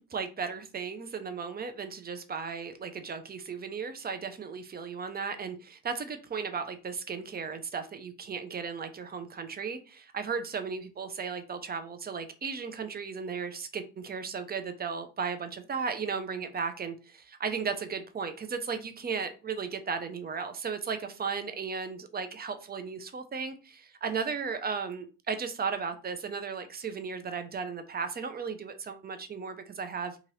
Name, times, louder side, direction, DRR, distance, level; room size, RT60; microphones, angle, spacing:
voice 1, 0.1-30.2, right 5 dB, 25° right, 8 dB, 0.5 m, -35 dB
2.9 x 2.5 x 3.1 m, 0.33 s
cardioid pair, 95°, 34 cm